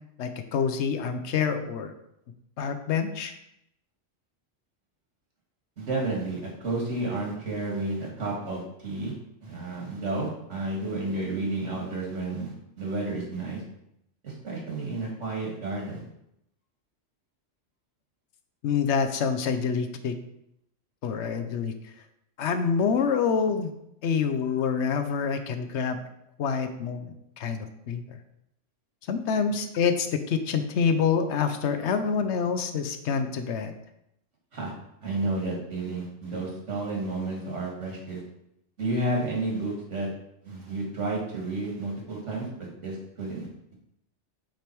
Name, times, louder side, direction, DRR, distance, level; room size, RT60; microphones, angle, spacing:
voice 1, 0.2-1.9 2.6-3.3 18.6-20.2 21.0-21.7 22.4-23.7 24.0-26.0 26.4-28.0 29.1-33.8, left 6 dB, 75° left, 8 dB, 0.9 m, -27 dB
voice 2, 5.8-9.1 9.4-13.6 14.2-16.0 34.5-34.7 35.0-38.2 38.8-40.1 40.4-43.7, right 2 dB, 90° right, -2 dB, 2.2 m, -31 dB
7.6 x 3.5 x 4.5 m, 0.78 s
omnidirectional pair, 1.2 m